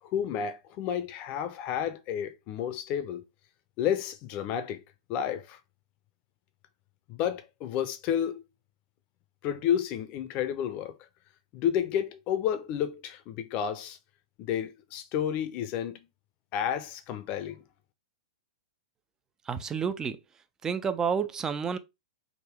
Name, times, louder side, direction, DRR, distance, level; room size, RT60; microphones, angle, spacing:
voice 1, 0.0-3.2 3.8-4.8 5.1-5.6 7.1-8.4 9.4-11.0 11.5-14.0 14.4-16.1 16.5-17.6, left 9 dB, 40° left, 0.6 m, -31 dB
voice 2, 19.5-20.2 20.6-21.8, right 6 dB, 15° right, 0.4 m, -29 dB
3.6 x 2.1 x 3.5 m
figure-of-eight pair, 110°, 3 cm